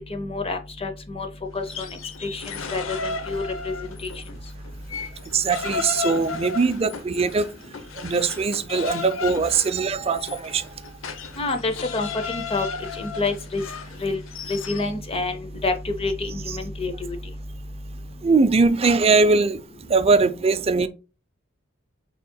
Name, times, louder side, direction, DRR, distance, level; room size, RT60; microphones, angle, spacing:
voice 1, 0.1-1.3 1.5-4.1 11.4-12.7 13.0-13.6 14.0-14.2 14.5-17.2, left 3 dB, 30° left, 0.6 m, -28 dB
sound 1, 1.6-4.3 4.6-14.9, left 4 dB, 80° left, 0.8 m, -34 dB
voice 2, 5.3-7.5 8.0-10.7 18.2-19.6 19.9-20.9, right 4 dB, 30° right, 0.5 m, -21 dB
5.4 x 3.6 x 2.2 m
head